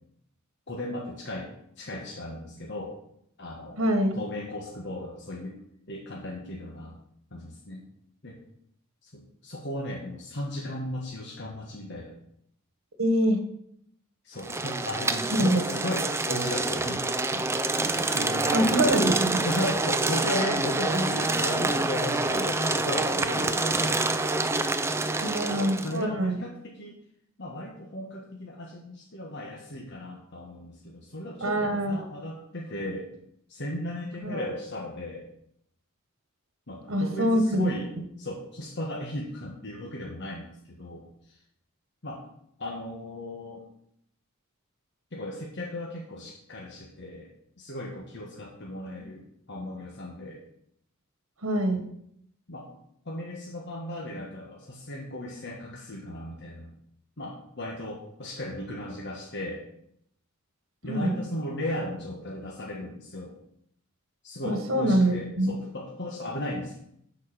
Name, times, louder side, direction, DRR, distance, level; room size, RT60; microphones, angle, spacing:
voice 1, 0.7-1.5 1.8-2.9 3.4-3.8 4.1-5.6 5.9-7.0 7.3-7.8 8.2-8.4 9.0-12.2 14.2-19.0 19.4-24.0 25.2-27.0 27.4-33.1 33.5-35.3 36.7-37.9 38.2-41.4 42.0-42.2 42.6-43.6 45.1-47.3 47.6-50.4 52.5-52.7 53.0-56.7 57.2-59.6 60.8-63.3 64.2-66.8, left 1 dB, 55° left, -2 dB, 1.4 m, -36 dB
voice 2, 3.8-4.2 13.0-13.4 15.3-15.6 18.5-19.4 25.2-26.4 31.4-32.0 34.2-34.5 36.9-37.7 51.4-51.9 60.9-61.2 64.4-65.5, right 1 dB, 70° right, 6 dB, 1.4 m, -24 dB
sound 1, 14.4-26.0, right 2 dB, 15° right, 0.5 m, -27 dB
11.0 x 4.8 x 6.1 m, 0.73 s
head